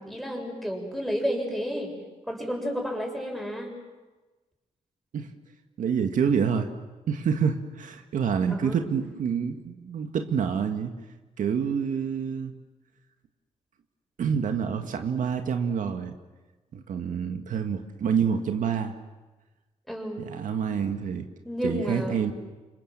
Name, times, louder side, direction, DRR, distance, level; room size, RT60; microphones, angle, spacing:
voice 1, 0.0-1.9 2.3-3.7 8.5-8.8 17.0-17.2 19.9-20.3 21.4-22.3, equal, ahead, 1 dB, 7.0 m, -31 dB
voice 2, 5.8-6.7 7.1-10.9 11.4-12.5 14.2-16.1 16.7-19.0 20.2-21.3 21.6-22.3, right 7 dB, 80° right, 6 dB, 1.9 m, -27 dB
29.5 x 26.0 x 7.5 m, 1.2 s
cardioid pair, 105°, 13 cm